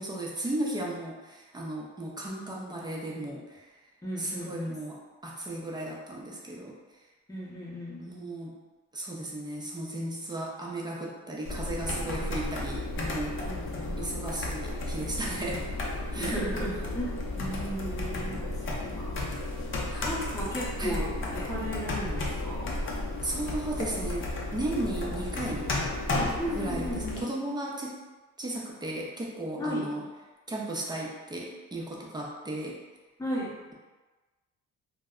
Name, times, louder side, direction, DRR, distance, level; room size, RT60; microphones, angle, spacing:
voice 1, 0.0-3.7 4.2-6.7 8.0-8.6 8.9-13.4 14.0-15.6 16.1-16.4 19.9-20.1 20.8-21.0 23.2-25.7 26.6-28.0 28.4-30.0 30.5-32.8, right 1 dB, 15° right, -3 dB, 0.6 m, -35 dB
voice 2, 4.0-4.8 7.3-8.2 13.4-14.0 16.1-18.4 19.0-19.2 20.0-22.8 26.4-27.2 29.6-29.9 33.2-33.5, equal, 10° left, -6 dB, 0.9 m, -35 dB
sound 1, 11.4-27.2, left 2 dB, 40° left, 0.6 m, -33 dB
2.1 x 2.1 x 3.6 m, 1.2 s
cardioid pair, 90°, 30 cm